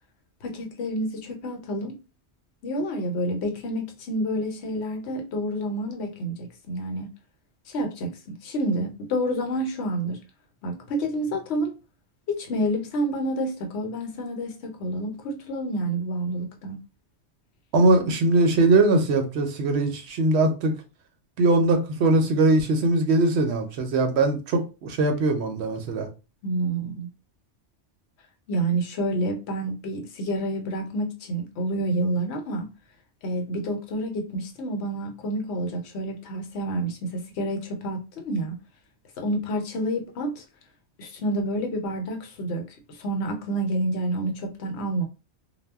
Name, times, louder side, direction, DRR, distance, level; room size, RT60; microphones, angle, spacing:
voice 1, 0.4-2.0 2.6-7.1 7.7-10.2 10.6-11.8 12.3-16.8 26.4-27.1 28.5-32.7 33.2-38.6 39.2-40.4 41.0-45.0, right 1 dB, 70° left, 0.9 m, -29 dB
voice 2, 17.7-20.7 21.4-26.1, right 2 dB, 70° right, 0.8 m, -21 dB
2.1 x 2.0 x 3.4 m
omnidirectional pair, 1.2 m